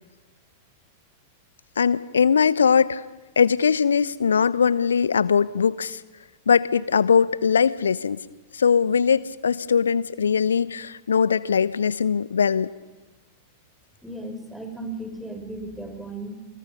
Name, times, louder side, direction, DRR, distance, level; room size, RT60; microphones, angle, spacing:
voice 1, 1.8-3.0 3.4-6.0 6.5-8.2 8.5-12.7, left 6 dB, 70° left, 18 dB, 0.9 m, -21 dB
voice 2, 14.0-16.3, right 2 dB, ahead, 4 dB, 6.0 m, -35 dB
29.0 x 28.5 x 5.5 m, 1.2 s
figure-of-eight pair, 90°, 0 cm